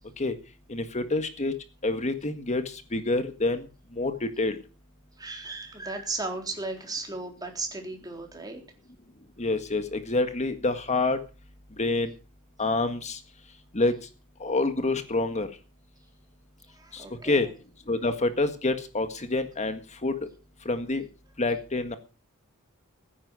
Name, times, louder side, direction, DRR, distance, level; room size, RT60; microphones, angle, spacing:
voice 1, 0.7-1.5 1.8-3.7 3.9-4.6 9.4-11.2 11.8-12.1 12.6-13.2 13.7-14.0 14.4-15.5 16.9-17.5 17.9-20.2 20.7-21.1 21.4-22.0, left 2 dB, 30° left, 9 dB, 1.7 m, -27 dB
voice 2, 5.2-8.6 16.8-17.5, right 3 dB, 20° right, 2 dB, 3.8 m, -35 dB
15.0 x 10.0 x 6.4 m, 0.36 s
head